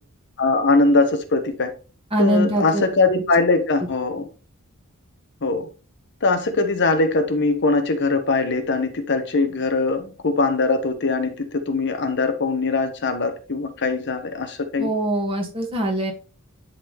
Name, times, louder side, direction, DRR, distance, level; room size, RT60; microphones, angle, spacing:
voice 1, 0.4-1.7 2.2-4.3 5.4-5.7 6.2-14.9, left 3 dB, 55° left, 1.0 m, -21 dB
voice 2, 2.1-2.8 14.8-16.1, equal, 25° right, 2.1 m, -22 dB
10.5 x 4.0 x 3.4 m
head